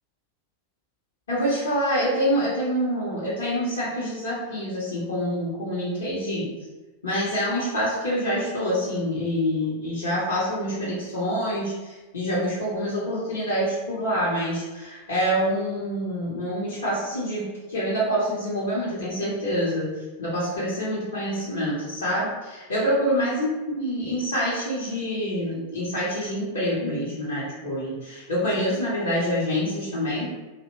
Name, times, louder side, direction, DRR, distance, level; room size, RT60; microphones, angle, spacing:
voice 1, 1.3-6.5 7.0-19.9 20.2-23.5 23.7-30.3, equal, 70° left, -7 dB, 0.7 m, -26 dB
2.7 x 2.0 x 2.9 m, 1.2 s
figure-of-eight pair, 90°, 0 cm